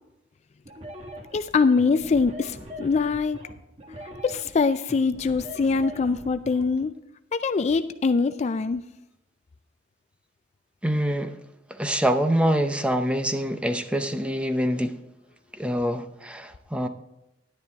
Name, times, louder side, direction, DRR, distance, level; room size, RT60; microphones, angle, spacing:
sound 1, 0.7-6.7, left 1 dB, 35° right, 1.6 m, -41 dB
voice 1, 1.3-3.4 4.2-6.9 7.3-8.8, left 4 dB, 35° left, 11 dB, 0.3 m, -23 dB
voice 2, 10.8-11.3 11.7-15.0 15.6-16.9, equal, 5° right, 8 dB, 0.6 m, -25 dB
11.0 x 9.9 x 3.5 m, 0.90 s
head